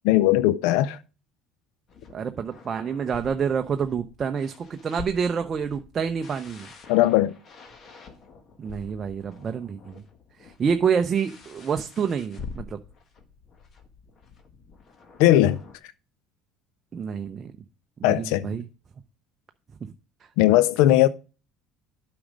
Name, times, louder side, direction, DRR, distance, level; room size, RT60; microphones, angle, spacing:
voice 1, 0.0-1.0 6.9-7.3 15.2-15.6 18.0-18.5 20.4-21.1, left 14 dB, 80° left, 0.3 m, -18 dB
sound 1, 1.9-15.8, left 5 dB, 40° left, 1.5 m, -46 dB
voice 2, 2.1-6.7 8.6-10.0 10.4-12.8 16.9-17.5 18.0-18.7 19.8-19.9, right 6 dB, 30° right, 0.6 m, -28 dB
8.6 x 5.2 x 5.0 m
supercardioid pair, 115°, 0 cm